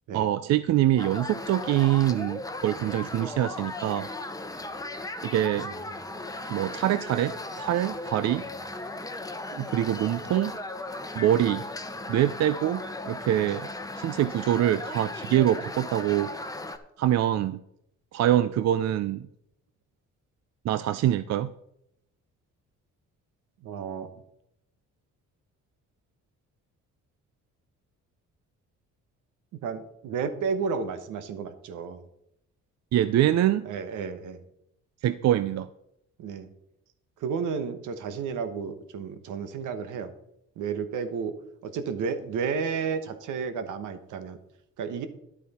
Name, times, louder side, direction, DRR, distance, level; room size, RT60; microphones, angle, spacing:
voice 1, 0.1-4.1 5.2-5.7 6.5-8.4 9.5-10.6 11.2-11.6 12.1-13.7 14.0-16.3 17.0-17.6 18.1-19.3 20.6-21.5 32.9-33.7 35.0-35.7, right 12 dB, 60° right, 13 dB, 0.5 m, -24 dB
sound 1, 1.0-16.8, left 2 dB, 10° left, 0.9 m, -37 dB
voice 2, 23.6-24.1 29.6-32.0 33.6-34.4 36.2-36.5 37.2-40.1 40.6-41.3 41.6-44.4 44.8-45.1, right 6 dB, 80° right, 9 dB, 1.2 m, -32 dB
10.5 x 8.3 x 4.2 m, 0.79 s
cardioid pair, 90°, 30 cm